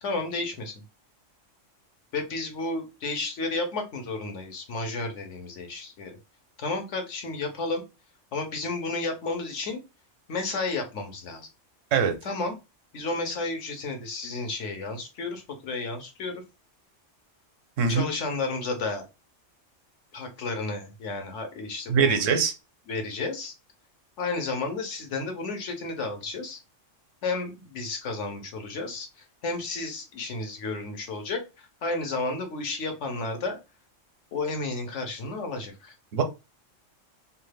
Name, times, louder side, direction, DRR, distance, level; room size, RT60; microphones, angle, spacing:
voice 1, 0.0-0.7 2.1-6.2 6.6-7.8 8.3-9.8 10.3-11.5 12.2-12.6 12.9-16.4 17.9-19.0 20.1-22.2 22.9-23.5 24.2-26.6 27.2-33.6 34.3-35.9, left 3 dB, 70° left, 5 dB, 1.1 m, -32 dB
voice 2, 17.8-18.1 21.9-22.5 36.1-36.2, right 6 dB, 85° right, 6 dB, 1.0 m, -22 dB
2.8 x 2.3 x 3.2 m, 0.27 s
omnidirectional pair, 1.3 m